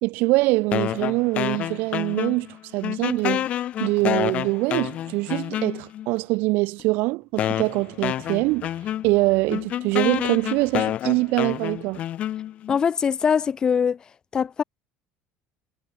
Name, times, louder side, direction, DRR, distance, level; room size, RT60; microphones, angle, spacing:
voice 1, 0.0-2.5 2.7-3.5 3.8-8.7 9.0-12.0, right 23 dB, 60° right, 2.2 m, -23 dB
sound 1, 0.7-2.6 2.8-6.1 6.8-6.9 7.4-12.8, left 12 dB, 40° left, 5.3 m, -28 dB
voice 2, 12.7-14.0 14.3-14.6, left 7 dB, 20° left, 5.9 m, -22 dB
cardioid pair, 170°, 4 cm